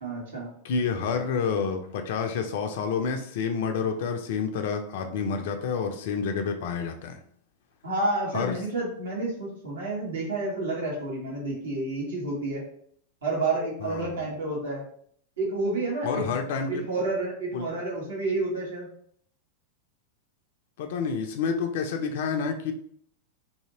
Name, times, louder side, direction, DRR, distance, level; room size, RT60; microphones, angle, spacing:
voice 1, 0.0-0.5 7.8-12.6 13.2-14.8 15.4-16.2 16.7-18.9, right 2 dB, 65° right, -3 dB, 1.2 m, -29 dB
voice 2, 0.6-7.2 8.3-8.6 13.8-14.2 16.0-16.8 17.5-17.7 20.8-22.7, left 5 dB, 55° left, 5 dB, 0.4 m, -29 dB
2.7 x 2.7 x 2.7 m, 0.62 s
figure-of-eight pair, 90°, 0 cm